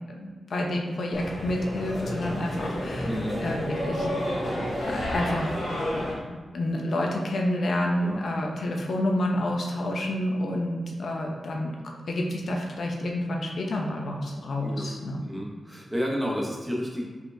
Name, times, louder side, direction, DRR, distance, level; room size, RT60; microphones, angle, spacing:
voice 1, 0.1-4.4 4.8-5.5 5.9-11.7 12.1-15.2, left 1 dB, 70° left, 0 dB, 0.6 m, -29 dB
sound 1, 1.1-6.1, equal, 85° left, 1.4 m, -30 dB
voice 2, 3.0-3.4 8.0-8.2 14.6-14.8 15.2-17.0, equal, 5° right, -3 dB, 0.9 m, -31 dB
4.7 x 4.0 x 2.6 m, 1.4 s
wide cardioid pair, 125°, 0 cm